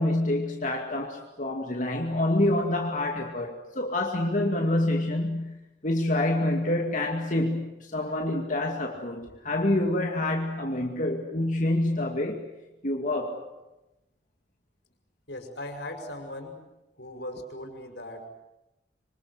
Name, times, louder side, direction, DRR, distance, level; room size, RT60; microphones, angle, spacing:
voice 1, 0.0-12.4 12.8-13.4, left 1 dB, 45° left, 1 dB, 2.4 m, -27 dB
voice 2, 15.3-16.6 17.0-18.3, left 1 dB, 70° left, 5 dB, 5.8 m, -39 dB
26.0 x 25.5 x 7.9 m, 0.96 s
head